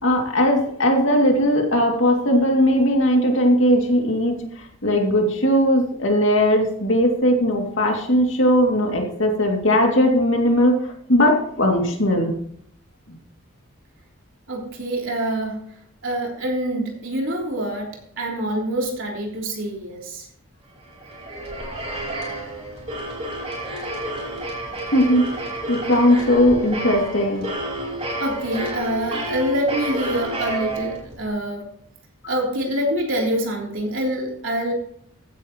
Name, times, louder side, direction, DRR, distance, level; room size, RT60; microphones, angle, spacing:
voice 1, 0.0-12.3 24.9-27.5, equal, 60° left, 1 dB, 2.6 m, -19 dB
voice 2, 14.5-15.6 16.0-20.3 27.9-31.7 32.3-34.7, right 1 dB, 65° right, -1 dB, 3.5 m, -26 dB
sound 1, 20.8-31.3, right 1 dB, 30° right, 4.4 m, -30 dB
15.0 x 10.0 x 3.1 m, 0.66 s
head